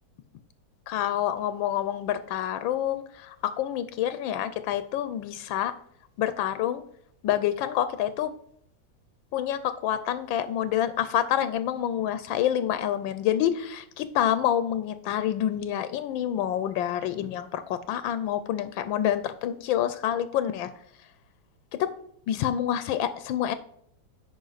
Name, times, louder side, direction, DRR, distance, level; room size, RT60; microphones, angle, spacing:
voice 1, 0.9-5.7 6.2-6.8 7.2-8.3 9.3-20.7 21.8-21.9 22.3-23.6, left 11 dB, 80° left, 12 dB, 1.3 m, -27 dB
9.1 x 5.4 x 3.9 m, 0.67 s
omnidirectional pair, 2.1 m